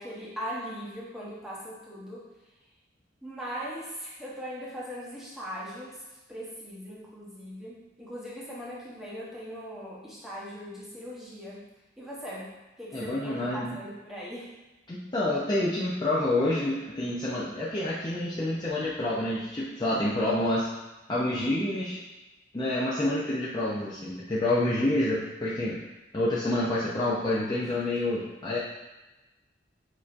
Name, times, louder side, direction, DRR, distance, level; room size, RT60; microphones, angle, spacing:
voice 1, 0.0-2.3 3.2-6.0 6.3-11.6 12.0-12.5 12.8-14.5, equal, ahead, -7 dB, 0.9 m, -39 dB
voice 2, 12.9-13.8 14.9-20.7 21.1-22.0 22.5-25.8 26.1-28.6, left 1 dB, 25° left, -8 dB, 0.5 m, -28 dB
6.3 x 2.7 x 2.5 m, 1.1 s
head